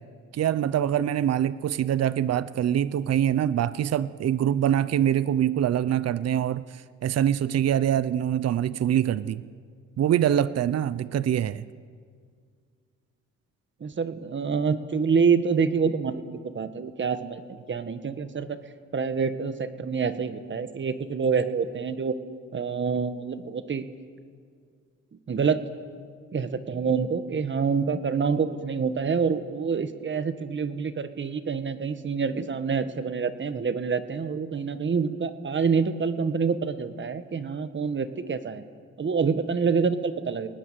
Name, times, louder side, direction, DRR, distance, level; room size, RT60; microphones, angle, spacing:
voice 1, 0.3-6.6 7.0-9.4 10.0-11.6, right 10 dB, 55° right, 16 dB, 0.8 m, -24 dB
voice 2, 13.8-18.6 18.9-22.2 22.5-23.8 25.3-25.6 26.3-38.6 39.0-40.5, right 5 dB, 40° right, 11 dB, 1.6 m, -27 dB
27.5 x 19.0 x 7.7 m, 2.1 s
cardioid pair, 90°, 30 cm